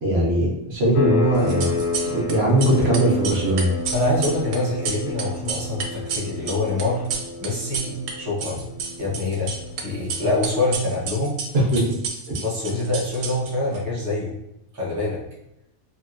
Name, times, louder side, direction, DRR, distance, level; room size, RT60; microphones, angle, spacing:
voice 1, 0.0-1.7 2.1-3.7 11.7-11.9 12.3-12.4, right 1 dB, 50° right, -3 dB, 0.8 m, -20 dB
sound 1, 0.9-11.3, left 3 dB, 85° left, 1.1 m, -30 dB
sound 2, 1.4-2.3 2.6-8.1 8.4-9.8 10.1-13.8, right 6 dB, 85° right, 1.1 m, -30 dB
voice 2, 3.9-7.1 7.4-8.7 9.0-9.5 9.8-11.4 12.4-14.4 14.7-15.2, left 2 dB, 25° right, -5 dB, 0.3 m, -25 dB
3.0 x 2.7 x 2.4 m, 0.83 s
omnidirectional pair, 1.6 m